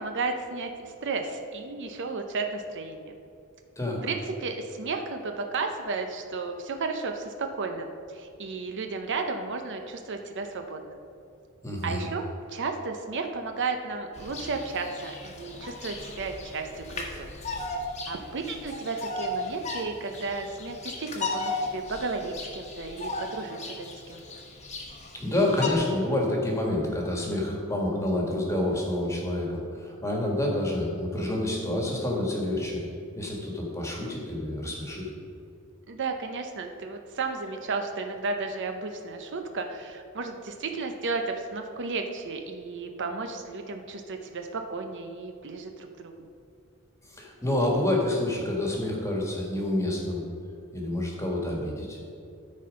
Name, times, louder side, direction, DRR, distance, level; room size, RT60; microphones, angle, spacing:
voice 1, 0.0-3.1 4.0-11.0 11.8-12.2 12.5-17.3 18.1-24.4 35.9-46.3, right 4 dB, 55° right, 5 dB, 0.6 m, -33 dB
voice 2, 11.6-12.0 25.1-32.8 33.1-35.1 47.1-50.2 50.7-52.0, left 1 dB, 15° left, -1 dB, 1.6 m, -28 dB
Bird vocalization bird call bird song, 14.1-25.7, left 2 dB, 30° left, 1.1 m, -36 dB
13.0 x 4.3 x 5.2 m, 2.6 s
head